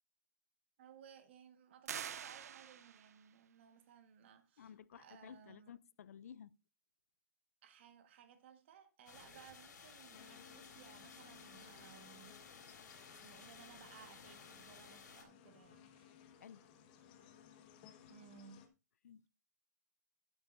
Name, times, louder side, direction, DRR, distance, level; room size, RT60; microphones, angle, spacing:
voice 1, 0.8-5.7 7.6-12.4 13.1-16.1 18.1-18.6, right 8 dB, 40° right, 1.4 m, -60 dB
sound 1, 1.9-3.2, right 9 dB, 60° right, 0.7 m, -46 dB
voice 2, 4.6-6.6 16.4-16.6 18.0-18.1 19.0-19.3, left 8 dB, 55° left, 0.4 m, -55 dB
sound 2, 9.1-15.2, left 5 dB, 80° left, 4.9 m, -57 dB
sound 3, 10.1-18.7, left 8 dB, 30° left, 1.3 m, -61 dB
12.5 x 9.4 x 2.6 m
hypercardioid pair, 170°, 10 cm